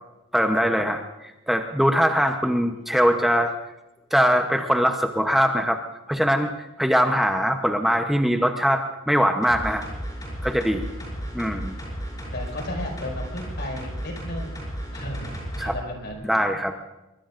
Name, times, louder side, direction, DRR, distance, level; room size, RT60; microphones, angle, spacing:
voice 1, 0.3-1.0 1.5-3.5 4.1-5.8 6.1-6.5 6.8-9.8 10.4-10.9 11.3-11.8 15.6-15.7 16.3-16.7, equal, ahead, 4 dB, 0.8 m, -21 dB
sound 1, 9.4-15.8 16.1-16.2, equal, 20° left, 6.0 m, -34 dB
voice 2, 10.9-11.4 12.3-14.6 14.9-15.3 15.6-16.2, left 1 dB, 55° left, 1 dB, 5.6 m, -35 dB
23.5 x 23.5 x 2.6 m, 1.0 s
head